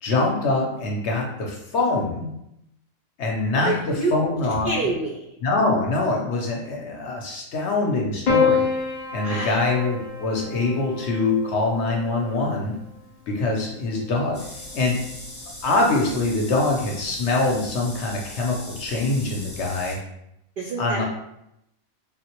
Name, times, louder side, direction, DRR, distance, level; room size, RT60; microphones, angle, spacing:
voice 1, 0.0-2.3 3.2-4.7 5.4-8.7 9.1-12.8 13.3-14.4 14.7-15.0 15.6-20.0 20.8-21.0, left 2 dB, 65° left, 0 dB, 0.8 m, -24 dB
voice 2, 3.6-4.1 4.6-5.3 9.2-9.6 20.6-21.0, right 2 dB, 70° right, -2 dB, 0.5 m, -27 dB
Piano, 8.3-12.7 13.9-14.6, left 5 dB, 80° left, 0.3 m, -27 dB
sound 1, 14.3-20.0, left 1 dB, 10° left, 0.8 m, -39 dB
3.6 x 2.1 x 2.8 m, 0.82 s
omnidirectional pair, 1.4 m